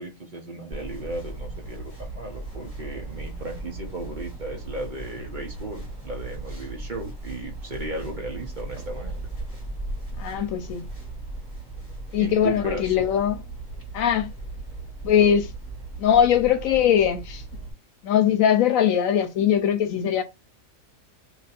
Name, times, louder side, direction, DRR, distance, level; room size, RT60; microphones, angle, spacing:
voice 1, 0.0-9.2 12.2-13.1, right 2 dB, 40° right, 1.0 m, -35 dB
sound 1, 0.7-17.7, right 2 dB, 10° left, 2.1 m, -37 dB
voice 2, 10.2-10.9 12.1-13.4 13.9-14.3 15.0-15.5 16.0-17.4 18.0-20.2, left 9 dB, 75° left, 1.0 m, -21 dB
3.3 x 2.8 x 4.1 m
omnidirectional pair, 1.4 m